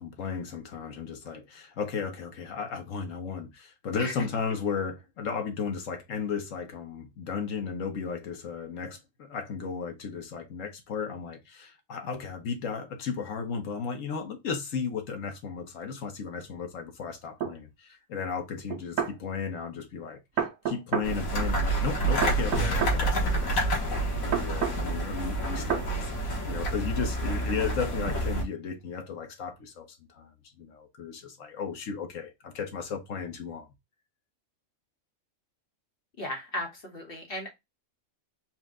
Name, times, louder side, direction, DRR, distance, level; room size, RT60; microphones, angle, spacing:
voice 1, 0.0-20.2 20.7-23.8 24.1-30.3 30.6-33.7, left 6 dB, 70° left, 1.2 m, -35 dB
sound 1, 17.4-17.5 18.7-19.2 20.4-21.1 22.2-23.0 24.3-24.8 25.7-25.9, right 8 dB, 75° right, 1.2 m, -29 dB
sound 2, 21.0-28.4, right 1 dB, 85° left, 1.7 m, -28 dB
voice 2, 36.2-37.5, left 1 dB, 45° left, 1.2 m, -35 dB
4.3 x 2.2 x 3.6 m
omnidirectional pair, 1.4 m